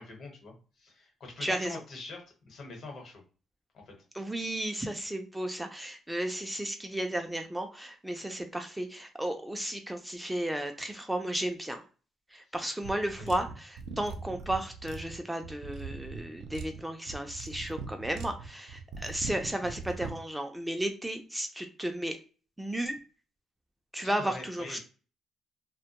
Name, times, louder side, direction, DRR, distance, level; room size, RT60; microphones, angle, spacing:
voice 1, 0.0-3.2 3.7-4.0 12.5-12.6 13.2-13.4 24.0-24.8, left 3 dB, 60° left, 2 dB, 1.0 m, -45 dB
voice 2, 1.4-1.8 4.1-11.8 12.3-22.2 22.6-23.0 23.9-24.8, right 1 dB, 5° right, 5 dB, 0.4 m, -34 dB
sound 1, 12.8-20.2, right 4 dB, 80° right, 0.4 m, -41 dB
2.2 x 2.1 x 2.8 m, 0.36 s
cardioid pair, 90°, 0 cm